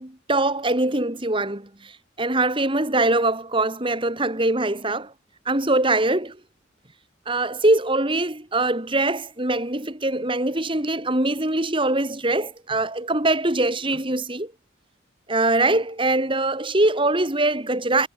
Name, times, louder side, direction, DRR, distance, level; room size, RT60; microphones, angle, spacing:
voice 1, 0.0-1.9 2.2-5.1 5.5-6.4 7.3-14.5 15.3-18.1, right 2 dB, 25° right, 2.8 m, -22 dB
head